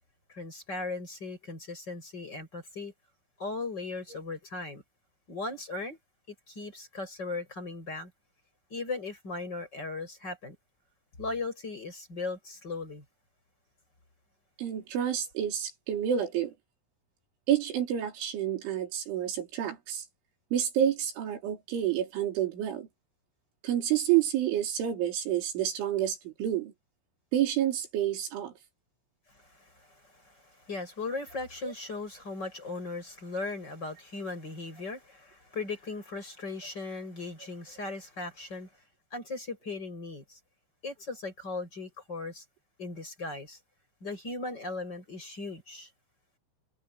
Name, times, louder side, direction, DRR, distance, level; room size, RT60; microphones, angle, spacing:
voice 1, 0.3-2.9 3.4-4.8 5.3-6.0 6.5-8.1 8.7-10.6 11.2-13.0 29.6-29.9 30.2-38.7 39.1-40.4 40.8-42.4 42.8-43.6 44.0-45.9, left 3 dB, 20° left, 7.3 m, -38 dB
voice 2, 14.6-16.5 17.5-20.0 20.5-22.9 23.6-26.7 27.3-28.5 31.6-31.7, right 10 dB, 90° right, 6.2 m, -29 dB
omnidirectional pair, 5.3 m